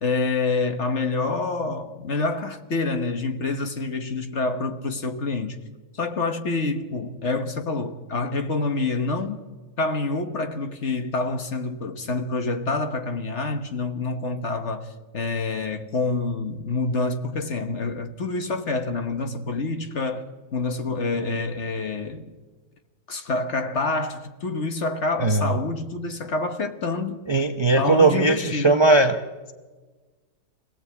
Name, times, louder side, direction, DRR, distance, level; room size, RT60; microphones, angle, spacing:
voice 1, 0.0-5.6 5.9-9.4 9.8-22.3 23.1-27.2 27.7-28.9, left 3 dB, 45° left, 1.5 m, -27 dB
voice 2, 25.2-25.5 27.3-29.2, right 3 dB, 25° right, 0.5 m, -19 dB
25.5 x 17.0 x 8.5 m
omnidirectional pair, 1.8 m